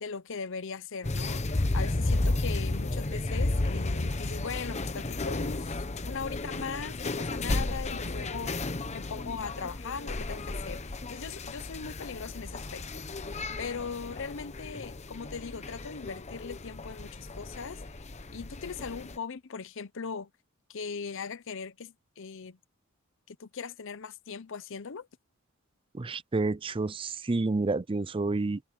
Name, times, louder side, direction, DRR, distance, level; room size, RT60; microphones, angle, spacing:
voice 1, 0.0-13.0 13.6-17.8 18.3-20.3 20.7-22.6 23.3-25.1, left 5 dB, 60° left, 0.7 m, -39 dB
sound 1, 1.0-19.2, left 2 dB, 30° left, 1.0 m, -33 dB
voice 2, 25.9-28.6, right 3 dB, 25° right, 0.5 m, -29 dB
head